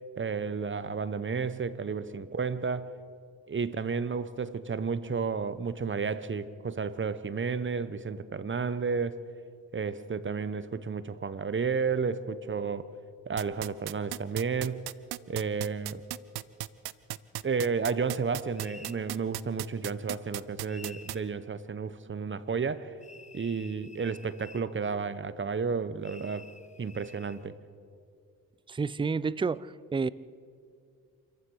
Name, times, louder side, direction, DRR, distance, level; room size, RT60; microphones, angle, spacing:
voice 1, 0.2-3.0 3.5-9.2 9.7-12.9 13.3-14.9 15.3-16.0 17.4-22.9 23.3-26.5 26.8-27.6, right 5 dB, 30° right, 1.1 m, -32 dB
sound 1, 13.4-21.1, right 17 dB, 85° right, 0.6 m, -35 dB
sound 2, 18.6-19.0 20.7-21.3 23.0-24.7 26.0-27.4, left 3 dB, 20° left, 1.4 m, -51 dB
voice 2, 28.7-30.1, right 4 dB, 15° right, 0.5 m, -30 dB
27.5 x 15.0 x 6.5 m
cardioid pair, 70°, 37 cm